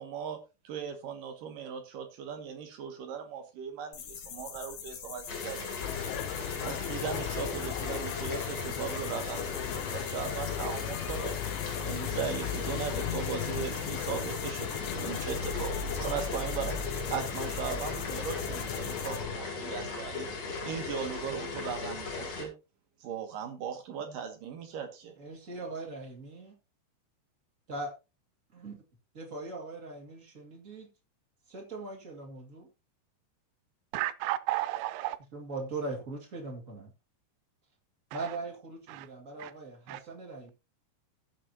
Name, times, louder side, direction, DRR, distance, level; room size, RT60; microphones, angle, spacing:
voice 1, 0.0-6.1 6.6-11.4 11.8-20.3 20.6-22.5 23.0-25.1, right 7 dB, 70° right, 2.1 m, -38 dB
sound 1, 3.9-19.2, left 8 dB, 65° left, 1.9 m, -44 dB
sound 2, 5.3-22.4, left 4 dB, 40° left, 3.2 m, -38 dB
sound 3, 5.8-19.4, left 9 dB, 85° left, 3.2 m, -37 dB
voice 2, 25.2-26.5 27.7-27.9 28.5-28.8 29.1-30.9 31.5-32.7 35.3-36.9 38.1-40.5, right 3 dB, 55° right, 0.9 m, -40 dB
voice 3, 33.9-35.2 38.1-38.3 38.9-39.1 39.4-39.5 39.9-40.0, right 16 dB, 85° right, 3.2 m, -33 dB
16.5 x 7.6 x 2.8 m
omnidirectional pair, 5.5 m